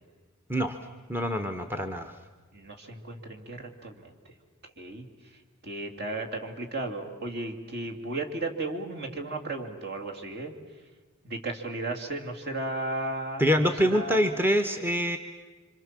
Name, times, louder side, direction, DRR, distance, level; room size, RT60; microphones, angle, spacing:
voice 1, 1.1-2.1 13.4-15.2, equal, 10° right, 7 dB, 1.0 m, -25 dB
voice 2, 2.5-4.1 4.8-5.1 5.6-10.5 11.2-13.4 13.9-14.2, right 2 dB, 50° right, 3 dB, 2.8 m, -34 dB
27.5 x 25.5 x 7.5 m, 1.3 s
head